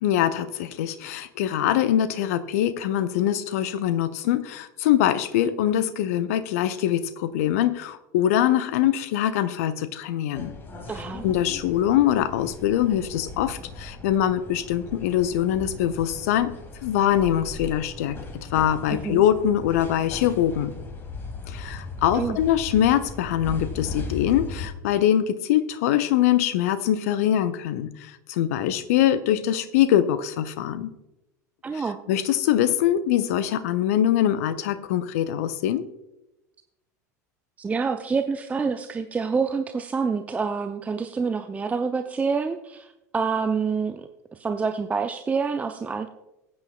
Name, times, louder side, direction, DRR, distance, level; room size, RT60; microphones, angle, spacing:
voice 1, 0.0-10.5 11.2-16.5 16.8-20.7 21.5-30.9 31.7-31.8 32.1-35.8, left 11 dB, 60° left, 13 dB, 0.7 m, -23 dB
sound 1, 10.3-24.7, left 3 dB, 25° left, 2.3 m, -38 dB
voice 2, 10.9-11.3 18.9-19.2 22.1-22.4 31.6-32.0 37.6-46.1, right 5 dB, 15° right, 8 dB, 0.5 m, -27 dB
20.5 x 8.7 x 2.3 m, 0.95 s
figure-of-eight pair, 75°, 9 cm